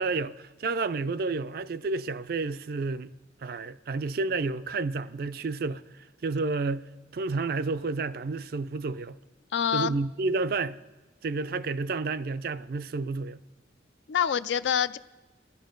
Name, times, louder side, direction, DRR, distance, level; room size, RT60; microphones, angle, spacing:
voice 1, 0.0-3.1 3.4-6.9 7.1-9.2 9.7-10.8 11.2-13.4, right 3 dB, 55° right, 0.4 m, -30 dB
voice 2, 9.5-10.0 14.1-15.0, left 8 dB, 70° left, 0.4 m, -26 dB
16.5 x 12.0 x 5.2 m
head